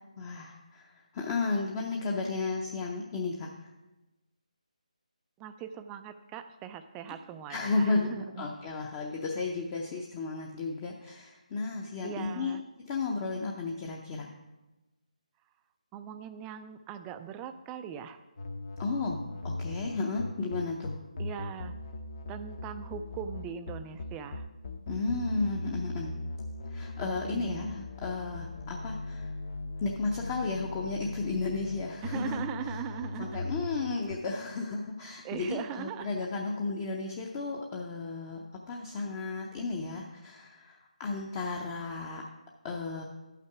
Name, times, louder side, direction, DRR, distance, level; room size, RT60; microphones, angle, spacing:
voice 1, 0.2-3.5 7.5-14.3 18.8-21.0 24.9-26.1 26.7-29.3 29.8-32.4 32.7-32.8 33.2-42.2 42.6-43.0, left 3 dB, 20° left, 0 dB, 0.6 m, -33 dB
voice 2, 5.4-8.5 12.0-12.6 15.9-18.2 21.2-21.7 22.3-24.5 27.0-27.7 32.0-33.5 35.2-36.3, right 8 dB, 10° right, 10 dB, 0.3 m, -40 dB
sound 1, 18.4-34.2, left 2 dB, 50° left, 0.9 m, -39 dB
11.5 x 5.8 x 4.7 m, 1.1 s
figure-of-eight pair, 160°, 4 cm